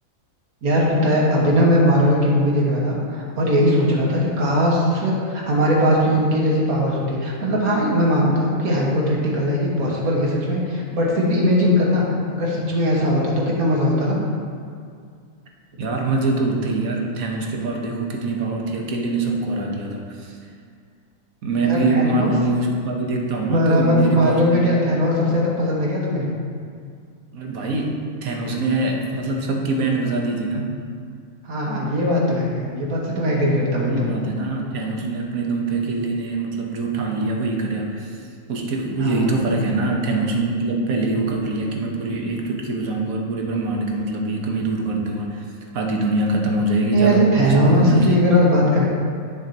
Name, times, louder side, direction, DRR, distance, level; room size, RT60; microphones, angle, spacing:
voice 1, 0.6-12.0 12.3-14.2 21.6-22.3 23.5-26.2 31.5-34.2 39.0-39.3 46.9-48.9, equal, 90° right, -3 dB, 1.9 m, -19 dB
voice 2, 15.8-20.4 21.4-24.7 27.3-30.7 33.8-38.2 38.5-48.2, right 2 dB, 75° right, 1 dB, 1.4 m, -24 dB
10.5 x 6.3 x 2.9 m, 2.2 s
omnidirectional pair, 1.5 m